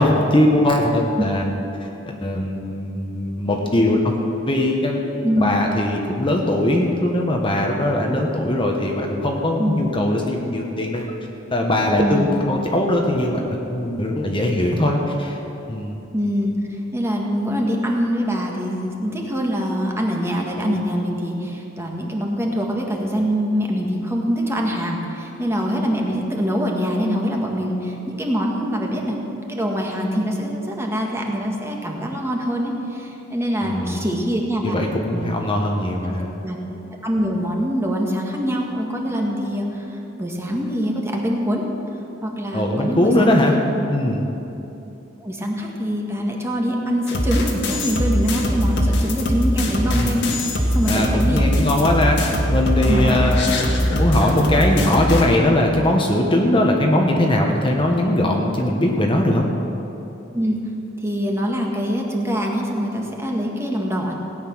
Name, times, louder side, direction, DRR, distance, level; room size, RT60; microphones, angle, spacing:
voice 1, 0.0-4.2 4.5-5.0 5.4-11.1 11.5-13.4 13.7-15.4 15.7-15.9 33.6-34.0 34.6-36.3 42.5-43.5 43.9-44.2 49.9-50.2 50.8-53.4 53.9-59.5, left 1 dB, 25° left, 1 dB, 1.2 m, -20 dB
voice 2, 12.0-12.3 16.1-29.2 29.5-34.7 35.1-35.2 36.1-36.2 36.4-41.6 42.2-43.6 45.2-50.2 50.7-51.4 52.9-53.2 60.3-60.6 61.0-64.2, equal, 15° right, 0 dB, 1.6 m, -24 dB
sound 1, 47.1-55.2, left 1 dB, 65° left, 1.7 m, -21 dB
17.0 x 9.5 x 6.2 m, 2.9 s
head